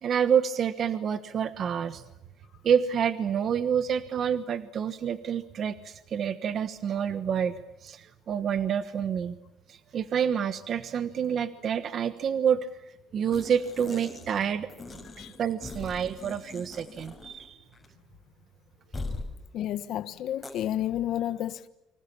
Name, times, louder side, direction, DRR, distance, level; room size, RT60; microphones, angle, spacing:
voice 1, 0.0-2.0 2.6-7.5 7.8-9.4 9.7-12.7 13.1-14.7 15.2-17.6, right 8 dB, 40° right, 1.2 m, -28 dB
sound 1, 13.3-14.4 14.7-17.5 17.7-17.9 18.9-19.3 20.4-20.5, left 3 dB, 15° left, 5.8 m, -40 dB
voice 2, 19.5-21.7, left 11 dB, 55° left, 1.3 m, -31 dB
30.0 x 25.5 x 7.2 m
cardioid pair, 140°, 0 cm